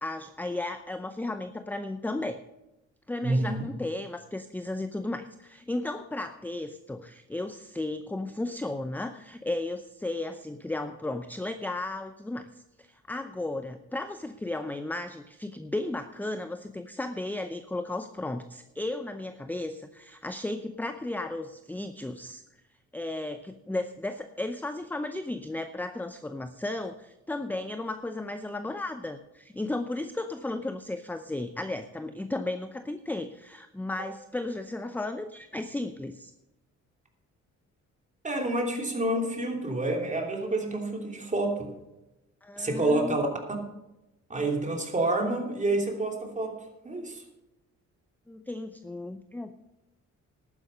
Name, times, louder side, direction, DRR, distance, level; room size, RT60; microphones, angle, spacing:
voice 1, 0.0-2.4 3.1-12.5 12.8-22.4 22.9-36.3 42.4-43.2 48.3-49.6, left 2 dB, 5° left, 9 dB, 0.6 m, -34 dB
voice 2, 3.2-3.6 34.0-34.1 38.2-41.7 42.6-43.3 44.3-46.5 46.8-47.2, right 2 dB, 25° right, 2 dB, 3.0 m, -28 dB
11.5 x 9.7 x 5.6 m, 0.97 s
cardioid pair, 90°, 30 cm